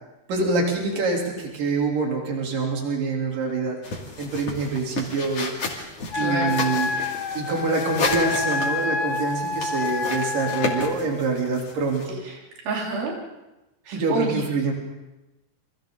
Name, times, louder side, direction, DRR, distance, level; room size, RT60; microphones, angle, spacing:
voice 1, 0.3-3.8 4.2-5.5 5.8-5.9 6.2-6.9 7.3-12.2 13.9-14.7, right 3 dB, 65° right, -1 dB, 5.0 m, -25 dB
sound 1, 3.8-12.0, left 3 dB, 40° left, 3.6 m, -32 dB
Wind instrument woodwind instrument, 6.1-11.0, left 4 dB, 75° left, 1.1 m, -28 dB
voice 2, 6.1-6.6 12.3-13.1 13.9-14.4, right 3 dB, 85° right, -2 dB, 5.0 m, -29 dB
29.5 x 25.5 x 3.9 m, 1.0 s
omnidirectional pair, 4.1 m